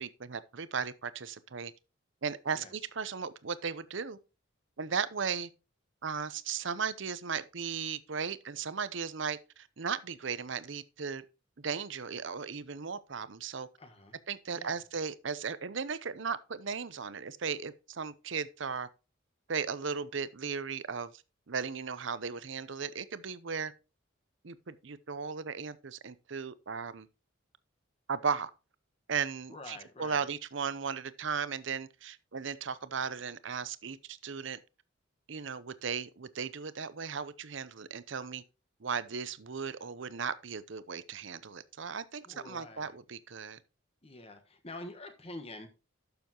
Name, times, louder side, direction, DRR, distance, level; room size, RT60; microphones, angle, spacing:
voice 1, 0.0-1.7 2.2-4.2 4.8-5.5 6.0-11.2 11.6-13.7 14.3-18.9 19.5-21.2 21.5-23.7 24.4-27.1 28.1-28.5 29.1-34.6 35.3-38.4 38.8-43.6, right 6 dB, 65° right, 0.7 m, -36 dB
voice 2, 2.5-2.9 13.8-14.2 14.5-14.8 29.5-30.2 42.2-43.0 44.0-45.7, left 2 dB, 30° left, 1.3 m, -47 dB
12.0 x 7.0 x 2.9 m
head